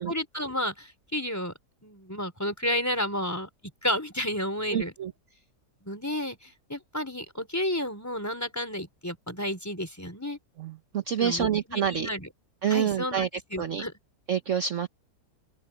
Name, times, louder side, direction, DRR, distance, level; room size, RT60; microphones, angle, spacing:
voice 1, 0.0-1.5 1.8-3.5 3.8-4.9 5.8-10.4 11.2-12.3 12.7-13.3 13.5-13.9, left 1 dB, 10° left, 4.0 m, -31 dB
voice 2, 4.7-5.1 10.6-12.1 12.6-13.3 13.6-13.8 14.3-14.9, right 8 dB, 50° right, 1.2 m, -27 dB
open air
omnidirectional pair, 1.8 m